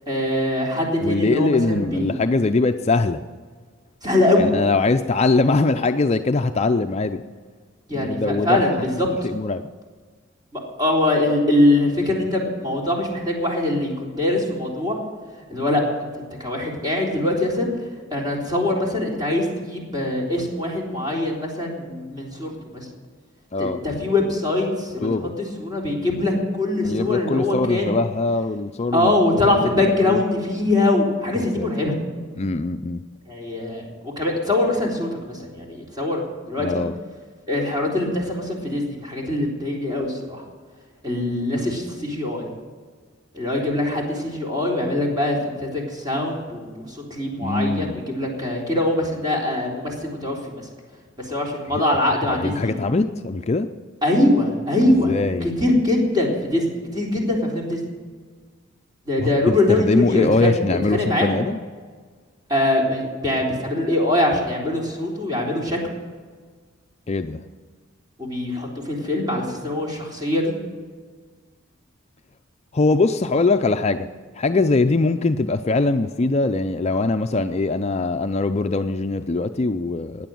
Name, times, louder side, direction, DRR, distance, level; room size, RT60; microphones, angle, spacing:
voice 1, 0.1-2.2 4.0-4.5 7.9-8.7 9.0-9.1 10.5-14.9 15.5-15.8 16.4-17.7 18.1-22.9 23.6-25.1 25.6-28.0 28.9-32.0 33.3-36.2 36.5-36.8 37.5-40.4 41.0-42.5 43.3-50.6 51.2-52.7 54.0-55.1 55.4-57.8 59.1-61.3 62.5-65.8 68.2-70.5, left 1 dB, 20° right, -2 dB, 3.7 m, -22 dB
voice 2, 1.0-3.2 4.4-7.2 7.9-8.6 9.2-9.7 23.5-23.8 25.0-25.3 26.8-29.2 29.5-29.7 30.0-30.2 31.4-31.7 32.4-33.0 36.6-36.9 47.4-48.0 51.7-51.8 52.2-53.7 55.0-55.5 59.2-61.6 67.1-67.4 72.7-74.1 74.4-80.3, left 3 dB, 30° left, 8 dB, 0.5 m, -22 dB
16.0 x 10.0 x 7.7 m, 1.5 s
head